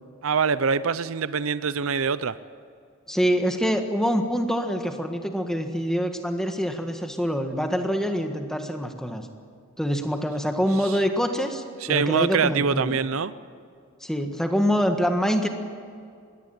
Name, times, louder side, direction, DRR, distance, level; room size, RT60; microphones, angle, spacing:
voice 1, 0.2-2.4 10.8-10.9 11.8-13.3, right 6 dB, 75° right, 15 dB, 0.6 m, -24 dB
voice 2, 3.1-9.3 9.8-13.0 14.0-15.5, equal, ahead, 5 dB, 1.5 m, -25 dB
21.0 x 17.5 x 8.8 m, 2.3 s
head